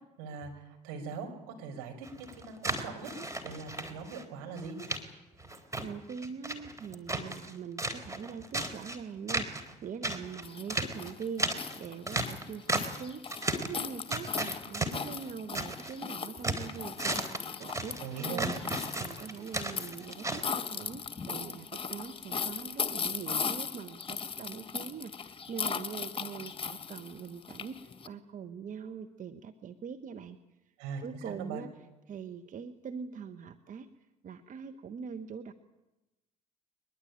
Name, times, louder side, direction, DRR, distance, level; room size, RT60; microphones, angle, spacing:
voice 1, 0.2-3.1 3.4-4.8 17.9-18.5 30.8-31.6, right 5 dB, 65° right, 2 dB, 5.7 m, -41 dB
sound 1, 2.0-4.2 4.6-5.0 5.4-7.5 7.8-9.0 9.3-9.7 10.0-13.0 13.3-13.8 14.1-15.9 16.2-20.4, right 2 dB, 15° right, 3.8 m, -35 dB
voice 2, 5.8-18.6 18.9-30.4 31.0-31.7 32.1-33.9 34.2-35.5, right 6 dB, 40° right, 8 dB, 1.3 m, -43 dB
sound 2, 10.4-28.1, left 6 dB, 25° left, 2.1 m, -38 dB
22.5 x 21.5 x 9.0 m, 0.99 s
figure-of-eight pair, 60°, 21 cm